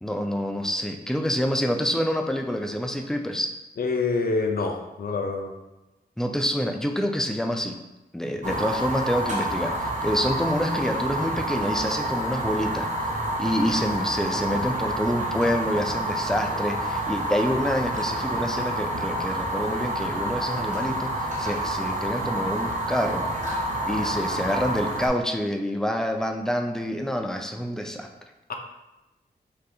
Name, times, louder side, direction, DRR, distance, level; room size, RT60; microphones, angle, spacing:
voice 1, 0.0-3.5 6.2-7.8 8.1-12.9 13.4-23.3 23.8-28.1, equal, 5° left, 4 dB, 0.3 m, -27 dB
voice 2, 3.8-5.5 8.4-8.6 28.5-28.6, left 3 dB, 65° left, 4 dB, 0.5 m, -26 dB
Fire, 8.4-25.1, right 1 dB, 45° right, 0.8 m, -28 dB
3.4 x 2.3 x 2.7 m, 1.0 s
cardioid pair, 65°, 17 cm